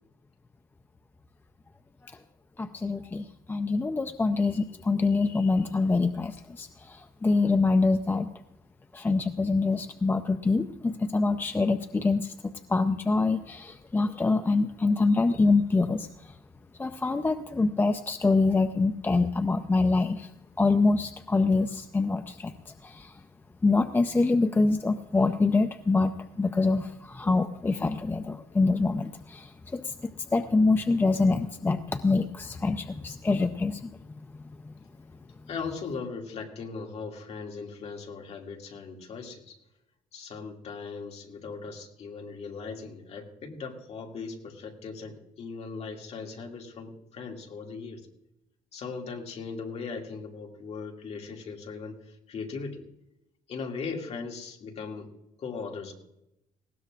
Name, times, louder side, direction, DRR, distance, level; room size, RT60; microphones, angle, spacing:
voice 1, 2.6-7.0 7.2-8.3 8.9-12.3 12.7-16.1 16.8-20.3 20.6-22.5 22.8-23.1 23.6-26.1 26.4-29.5 29.7-33.9, left 3 dB, 15° left, 8 dB, 0.4 m, -25 dB
voice 2, 35.5-39.6 40.1-48.1 48.7-52.9 53.5-55.1 55.4-55.9, left 5 dB, 45° left, 1 dB, 2.3 m, -38 dB
19.5 x 17.5 x 2.5 m, 0.86 s
cardioid pair, 165°, 15 cm